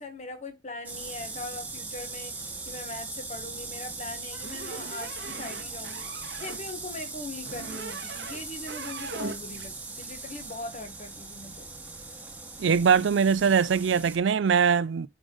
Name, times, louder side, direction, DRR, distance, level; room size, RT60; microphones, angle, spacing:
voice 1, 0.0-2.3 2.6-6.1 6.4-11.7, left 2 dB, 40° left, 1.5 m, -40 dB
sound 1, 0.8-14.2, right 3 dB, 10° right, 1.4 m, -39 dB
sound 2, 4.4-6.6 7.4-8.4 8.7-9.7, right 4 dB, 65° right, 0.8 m, -40 dB
voice 2, 12.6-15.1, right 6 dB, 85° right, 0.4 m, -22 dB
5.2 x 4.9 x 5.3 m
head